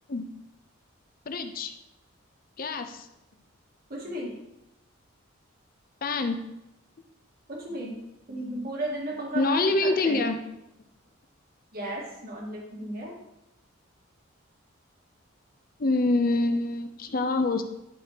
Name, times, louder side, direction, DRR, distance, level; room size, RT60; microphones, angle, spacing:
voice 1, 1.3-1.7 2.6-3.1 6.0-6.4 9.3-10.4 15.8-17.6, left 2 dB, 45° left, 7 dB, 0.6 m, -25 dB
voice 2, 3.9-4.3 7.5-8.0 8.3-10.2 11.7-13.1, right 1 dB, 45° right, -2 dB, 1.6 m, -34 dB
12.0 x 4.3 x 2.9 m, 0.87 s
head